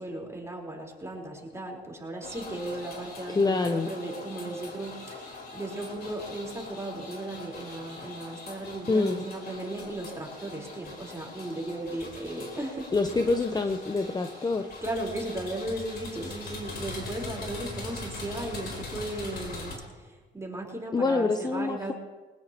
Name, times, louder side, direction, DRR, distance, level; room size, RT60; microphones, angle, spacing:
voice 1, 0.0-13.6 14.0-14.1 14.8-21.9, right 1 dB, 15° right, -1 dB, 4.4 m, -36 dB
sound 1, 2.2-19.8, left 3 dB, 55° left, 4.2 m, -42 dB
voice 2, 3.3-3.9 8.9-9.3 12.9-14.7 20.9-21.9, left 3 dB, 20° left, 7 dB, 0.8 m, -26 dB
21.0 x 19.5 x 3.0 m, 1.3 s
cardioid pair, 90°, 20 cm